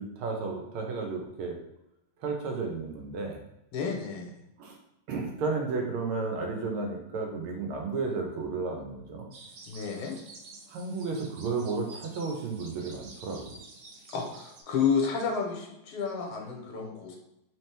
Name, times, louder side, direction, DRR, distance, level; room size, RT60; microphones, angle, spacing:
voice 1, 0.0-1.6 2.2-3.4 4.6-4.8 5.1-9.3 10.7-13.6, right 4 dB, 85° right, 2 dB, 1.7 m, -33 dB
voice 2, 3.7-4.3 9.7-10.1 14.1-17.2, left 6 dB, 80° left, 1 dB, 1.7 m, -30 dB
sound 1, 9.3-14.6, right 3 dB, 70° right, 1.2 m, -50 dB
3.9 x 3.0 x 3.3 m, 0.88 s
omnidirectional pair, 2.3 m